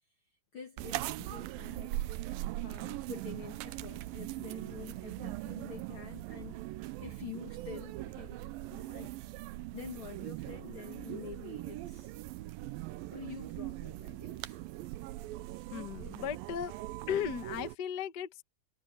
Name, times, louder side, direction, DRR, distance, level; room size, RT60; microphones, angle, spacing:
voice 1, 0.5-2.0 2.6-6.6 7.0-9.1 9.5-12.2 13.1-14.6, left 7 dB, 50° left, 1.8 m, -48 dB
sound 1, 0.8-17.8, right 16 dB, 85° right, 2.4 m, -41 dB
voice 2, 15.7-16.7 17.1-18.3, left 8 dB, 80° left, 0.9 m, -35 dB
omnidirectional pair, 4.1 m